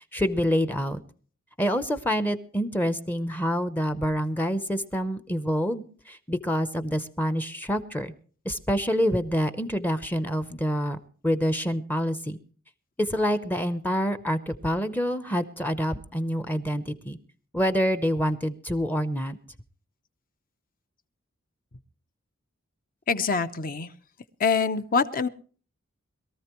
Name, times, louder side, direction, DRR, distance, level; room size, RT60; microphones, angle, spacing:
voice 1, 0.1-1.0 1.6-8.1 8.5-11.0 11.2-12.4 13.0-17.2 17.5-19.4, equal, 10° left, 12 dB, 0.7 m, -27 dB
voice 2, 23.1-23.9 24.4-25.3, left 5 dB, 45° left, 11 dB, 0.8 m, -25 dB
22.0 x 13.5 x 3.0 m, 0.41 s
head